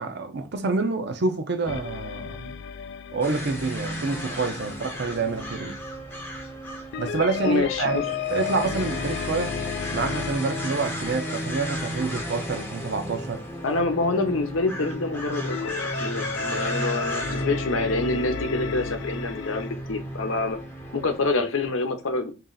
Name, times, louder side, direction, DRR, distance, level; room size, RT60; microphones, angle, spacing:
voice 1, 0.0-2.6 3.1-5.8 7.0-9.5 9.9-13.4, right 3 dB, 55° right, 0.6 m, -27 dB
sound 1, 1.7-5.0 6.9-13.4 15.5-19.7, left 6 dB, 60° left, 0.3 m, -34 dB
sound 2, 3.2-21.3, equal, 10° left, 0.7 m, -34 dB
voice 2, 7.4-8.0 13.6-20.6 20.9-22.3, left 3 dB, 85° left, 0.7 m, -26 dB
3.1 x 2.8 x 3.7 m
head